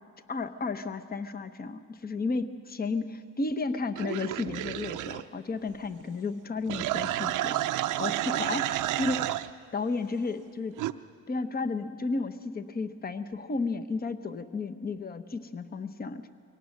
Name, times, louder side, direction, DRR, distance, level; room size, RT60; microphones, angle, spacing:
voice 1, 0.3-9.4 9.7-10.8 11.3-16.3, left 3 dB, 30° left, 10 dB, 1.0 m, -33 dB
sound 1, 4.0-5.2 6.7-9.5 10.8-10.9, right 14 dB, 90° right, 0.6 m, -30 dB
23.5 x 18.0 x 6.6 m, 2.3 s
cardioid pair, 90°, 30 cm